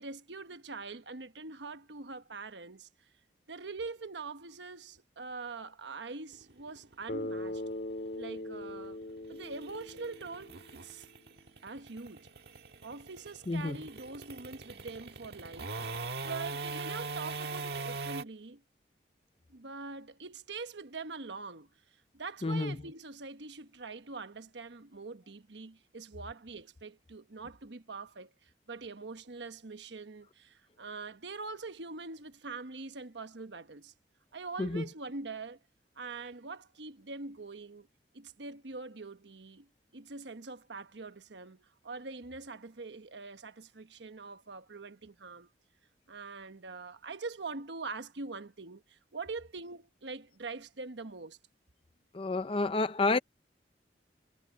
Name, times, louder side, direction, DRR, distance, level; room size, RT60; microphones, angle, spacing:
voice 1, 0.0-3.1 3.5-7.6 8.1-9.0 9.3-11.1 11.6-12.3 12.8-15.7 16.2-18.6 19.5-33.9 34.3-35.6 35.9-37.9 38.1-45.5 46.1-51.4, right 3 dB, 80° right, 1.2 m, -44 dB
sound 1, 6.3-18.2, right 3 dB, 65° right, 1.7 m, -41 dB
Bass guitar, 7.1-11.1, left 1 dB, 55° left, 2.8 m, -40 dB
voice 2, 13.5-13.8 22.4-22.7 34.6-34.8 52.1-53.2, left 3 dB, 30° left, 0.5 m, -29 dB
head